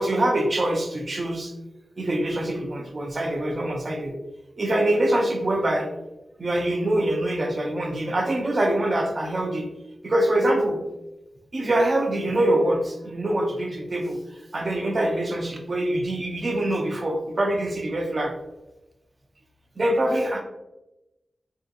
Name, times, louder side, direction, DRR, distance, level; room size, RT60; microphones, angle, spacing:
voice 1, 0.0-1.6 2.0-4.1 4.6-5.9 6.4-9.6 10.0-10.8 11.5-14.2 14.5-18.3 19.8-20.4, right 1 dB, 45° right, 3 dB, 0.6 m, -24 dB
3.7 x 2.7 x 2.4 m, 0.96 s
wide cardioid pair, 90°, 0 cm